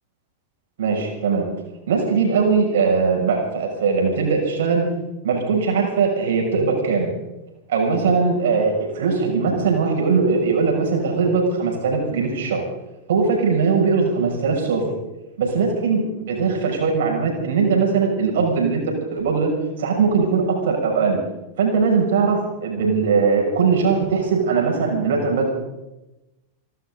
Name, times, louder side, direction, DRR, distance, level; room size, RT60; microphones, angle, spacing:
voice 1, 0.8-1.5 1.9-4.9 5.2-7.1 7.7-12.6 13.1-14.8 15.4-19.5 19.8-21.2 21.6-25.5, right 5 dB, 60° right, 1 dB, 5.8 m, -20 dB
30.0 x 12.5 x 3.8 m, 0.98 s
figure-of-eight pair, 90°, 0 cm